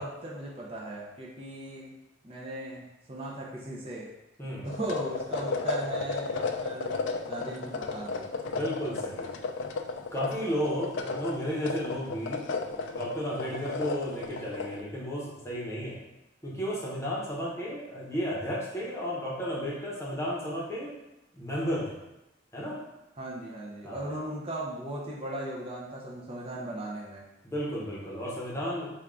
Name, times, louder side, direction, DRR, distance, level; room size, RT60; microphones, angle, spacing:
voice 1, 0.0-1.9 2.2-4.1 4.6-7.0 7.3-8.3 23.2-27.2, right 1 dB, 30° right, -4 dB, 0.5 m, -37 dB
sound 1, 4.7-14.8, left 4 dB, 75° left, 0.3 m, -34 dB
voice 2, 8.5-9.3 10.1-16.0 16.4-20.9 21.3-22.0 22.5-22.8 23.8-24.1 27.4-28.9, equal, 15° left, -6 dB, 0.8 m, -33 dB
3.5 x 2.3 x 3.7 m, 0.96 s
head